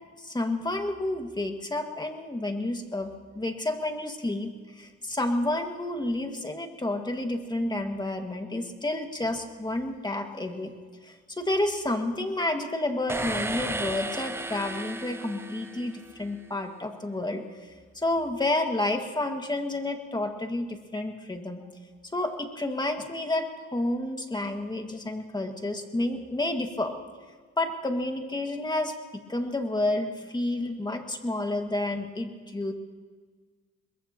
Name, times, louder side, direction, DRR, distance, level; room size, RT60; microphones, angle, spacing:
voice 1, 0.2-10.7 11.0-17.4 17.9-21.6 22.1-26.9 27.6-32.7, left 2 dB, 15° left, 4 dB, 1.9 m, -30 dB
sound 1, 13.1-16.2, right 2 dB, 10° right, 0.7 m, -34 dB
22.5 x 21.0 x 3.0 m, 1.5 s
cardioid pair, 90°, 30 cm